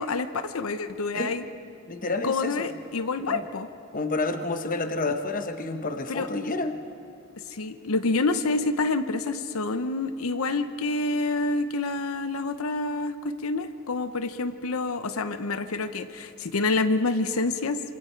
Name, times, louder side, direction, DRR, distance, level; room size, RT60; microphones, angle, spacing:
voice 1, 0.0-1.4 2.2-3.7 6.1-6.3 7.5-17.8, left 3 dB, 85° left, 10 dB, 0.8 m, -27 dB
voice 2, 1.9-2.6 3.2-3.4 3.9-6.8, left 2 dB, 40° left, 7 dB, 1.1 m, -29 dB
26.5 x 26.5 x 4.5 m, 2.5 s
head